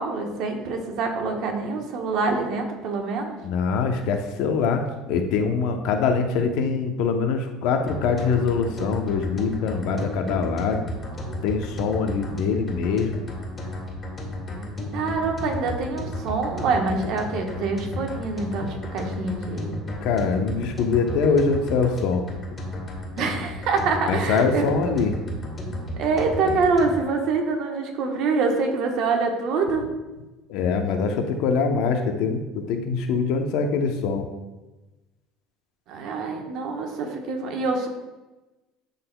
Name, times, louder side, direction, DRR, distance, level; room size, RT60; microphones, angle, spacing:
voice 1, 0.0-3.4 14.9-19.8 23.2-24.6 25.9-29.8 35.9-37.9, right 4 dB, 65° right, 3 dB, 1.1 m, -25 dB
voice 2, 3.4-10.8 11.4-13.2 20.0-22.2 24.1-25.2 30.5-34.3, left 5 dB, 75° left, 5 dB, 0.8 m, -23 dB
sound 1, 7.9-27.1, left 1 dB, 25° left, 2.0 m, -33 dB
11.5 x 4.1 x 2.3 m, 1.1 s
supercardioid pair, 105°, 0 cm